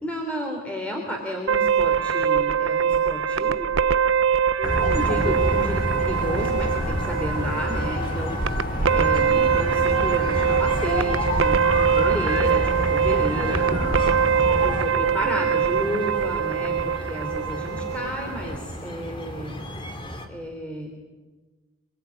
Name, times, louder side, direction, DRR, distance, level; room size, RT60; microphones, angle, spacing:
voice 1, 0.0-3.7 4.6-8.4 8.9-9.2 9.5-13.7 14.6-19.6 20.3-20.9, equal, 5° left, 1 dB, 3.5 m, -31 dB
sound 1, 1.5-18.6, right 7 dB, 75° right, 0.9 m, -23 dB
sound 2, 4.6-14.8, left 1 dB, 45° left, 4.4 m, -27 dB
sound 3, 4.9-20.3, left 1 dB, 25° left, 3.0 m, -37 dB
voice 2, 9.2-9.5 13.3-14.8 15.2-15.5, right 1 dB, 25° right, -3 dB, 3.1 m, -36 dB
28.0 x 20.5 x 9.5 m, 1.3 s
head